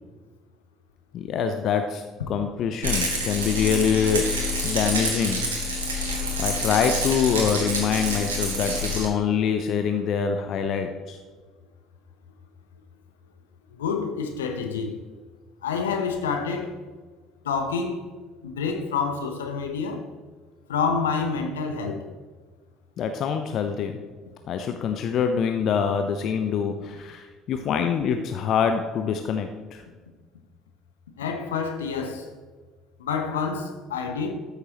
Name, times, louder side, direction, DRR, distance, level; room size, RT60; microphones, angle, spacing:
voice 1, 1.1-2.0 2.3-4.3 4.6-5.4 6.4-11.2 23.0-23.9 24.5-29.8, left 7 dB, 50° left, 0.6 m, -25 dB
Rattle, 2.8-9.1, equal, 75° right, 1.6 m, -27 dB
voice 2, 13.8-14.9 15.6-16.7 17.4-18.0 18.4-20.0 20.7-22.0 31.2-32.3 33.0-34.3, left 5 dB, 75° left, 1.0 m, -28 dB
13.5 x 6.6 x 3.0 m
figure-of-eight pair, 55°, 0 cm